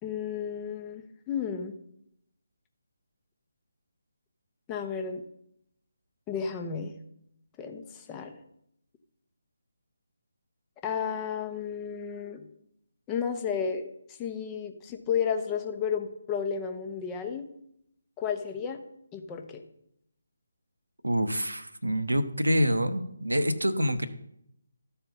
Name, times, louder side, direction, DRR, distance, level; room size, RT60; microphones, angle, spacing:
voice 1, 0.0-1.7 4.7-5.2 6.3-6.9 7.6-8.3 10.8-12.5 13.1-13.9 14.2-17.5 18.2-18.8 19.1-19.6, left 7 dB, 15° left, 5 dB, 0.8 m, -32 dB
voice 2, 21.0-24.1, equal, 80° right, 10 dB, 0.9 m, -26 dB
13.5 x 4.5 x 5.4 m, 0.76 s
figure-of-eight pair, 150°, 0 cm